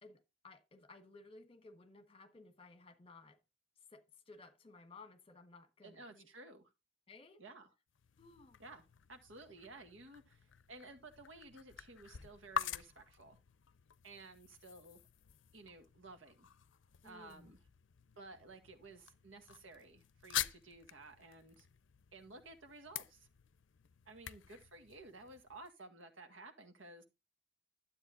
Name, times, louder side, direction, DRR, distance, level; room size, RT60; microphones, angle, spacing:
voice 1, 0.0-3.4 3.9-6.3 7.1-7.4 8.2-8.6 17.0-17.5, left 3 dB, 30° left, 1.2 m, -58 dB
voice 2, 5.8-6.7 7.4-7.7 8.6-8.8 9.1-13.4 14.0-15.0 15.5-16.5 17.0-17.6 18.2-21.7 22.1-23.3 24.0-27.0, right 2 dB, 85° right, 1.8 m, -55 dB
sound 1, 7.9-25.7, left 9 dB, 75° left, 0.5 m, -47 dB
12.5 x 7.9 x 2.5 m
head